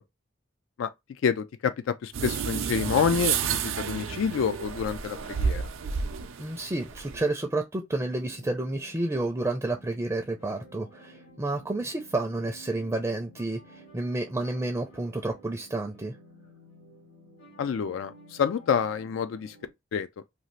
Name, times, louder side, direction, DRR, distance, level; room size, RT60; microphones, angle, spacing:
voice 1, 1.2-5.6 17.6-19.6 19.9-20.1, left 7 dB, 85° left, 0.3 m, -28 dB
sound 1, 2.1-7.3, right 6 dB, 85° right, 0.4 m, -31 dB
voice 2, 6.4-16.1, right 2 dB, 15° right, 0.4 m, -30 dB
sound 2, 8.0-19.7, right 1 dB, 60° left, 1.2 m, -53 dB
2.6 x 2.4 x 3.0 m
head